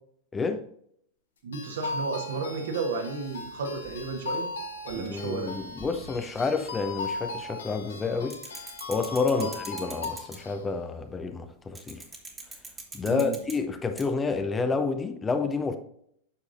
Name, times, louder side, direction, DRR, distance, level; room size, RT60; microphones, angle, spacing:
voice 1, 0.3-0.6 5.0-12.0 12.9-15.8, left 4 dB, 15° left, 0.6 m, -29 dB
voice 2, 1.4-4.5 4.8-5.5 9.3-9.5 13.0-13.4, right 4 dB, 60° right, 1.4 m, -33 dB
sound 1, 1.5-10.6, left 3 dB, 70° left, 1.1 m, -38 dB
sound 2, 3.2-7.4 7.7-10.6 11.7-14.5, right 2 dB, 15° right, 1.5 m, -46 dB
8.3 x 6.4 x 2.6 m
figure-of-eight pair, 90°, 0 cm